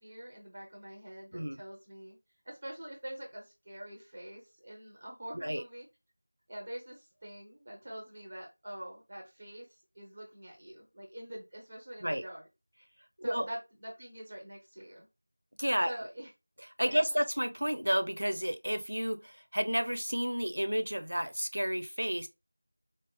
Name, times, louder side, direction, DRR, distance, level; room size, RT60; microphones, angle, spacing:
voice 1, 0.0-2.2 2.4-5.9 6.5-12.4 13.2-15.1 15.9-16.3 16.8-17.0, right 1 dB, 15° right, 0.5 m, -45 dB
voice 2, 15.6-15.9 16.6-22.3, equal, 85° right, 0.7 m, -31 dB
4.0 x 2.0 x 3.6 m
figure-of-eight pair, 180°, 0 cm